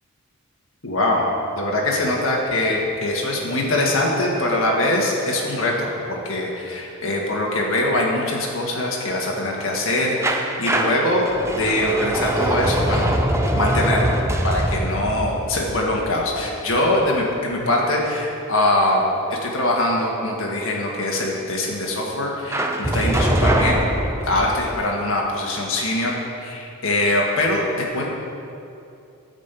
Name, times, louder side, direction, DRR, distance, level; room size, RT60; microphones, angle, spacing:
voice 1, 0.8-1.2 1.5-13.1 13.5-14.2 14.4-19.0 19.3-23.8 24.2-28.1, left 1 dB, 65° left, -2 dB, 1.8 m, -22 dB
sound 1, 10.2-17.0 22.5-24.7, right 1 dB, 10° right, 0.6 m, -23 dB
10.0 x 5.4 x 8.2 m, 2.7 s
head